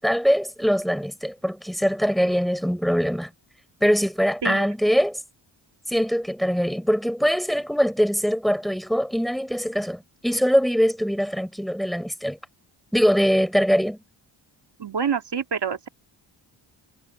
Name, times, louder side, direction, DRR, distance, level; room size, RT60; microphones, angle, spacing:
voice 1, 0.0-3.3 3.8-5.2 5.9-12.4 12.9-14.0, equal, ahead, 6.9 m, -22 dB
voice 2, 14.8-15.9, right 7 dB, 55° right, 2.5 m, -27 dB
cardioid pair, 50°, 48 cm